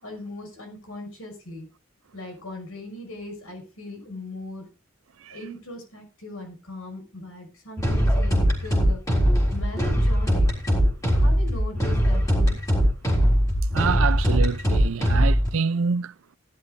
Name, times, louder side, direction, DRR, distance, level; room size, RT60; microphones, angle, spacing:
voice 1, 0.0-1.7 2.1-4.7 5.3-9.0 9.5-10.5 11.1-12.6, left 1 dB, 85° left, 5.7 m, -39 dB
sound 1, 7.8-15.5, equal, 15° left, 3.5 m, -21 dB
voice 2, 13.7-16.1, right 5 dB, 70° right, 0.5 m, -26 dB
17.5 x 11.0 x 2.5 m
head